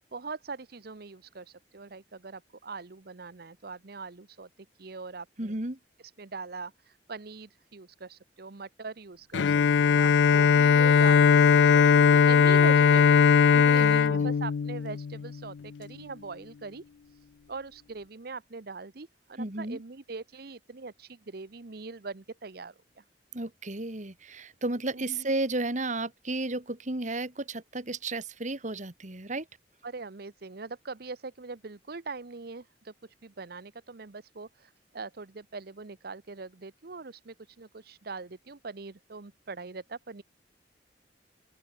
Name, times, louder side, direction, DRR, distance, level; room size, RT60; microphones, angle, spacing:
voice 1, 0.1-5.6 6.2-16.8 17.1-23.0 24.9-25.2 29.8-40.2, right 4 dB, 60° right, 0.9 m, -42 dB
voice 2, 5.4-5.8 13.5-14.3 19.4-19.8 23.3-29.5, right 2 dB, 45° right, 2.2 m, -33 dB
Bowed string instrument, 9.3-15.3, left 6 dB, 80° left, 0.4 m, -20 dB
open air
head